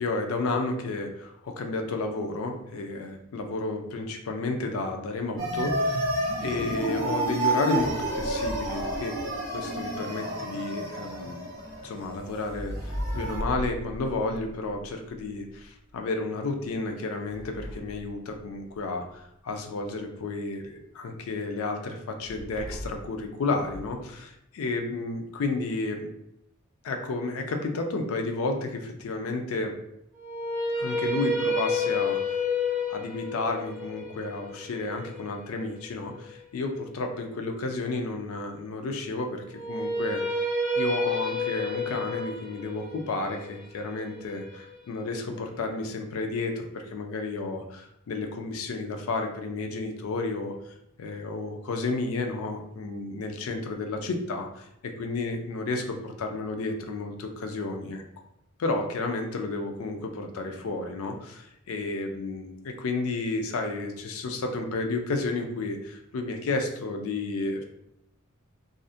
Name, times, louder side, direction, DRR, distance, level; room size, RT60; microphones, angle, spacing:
voice 1, 0.0-6.1 6.4-9.2 9.5-11.5 11.8-26.1 26.8-29.8 30.8-32.4 32.9-40.4 40.8-58.0 58.6-67.6, left 3 dB, 85° left, 4 dB, 0.4 m, -32 dB
sound 1, 5.4-13.4, right 1 dB, 45° right, 0.7 m, -30 dB
sound 2, 11.6-15.7 16.6-18.9 22.2-23.1 23.5-24.0, equal, ahead, 0.4 m, -38 dB
sound 3, 30.1-36.3 39.5-45.6, left 2 dB, 15° right, 1.0 m, -30 dB
2.4 x 2.0 x 2.5 m, 0.80 s
head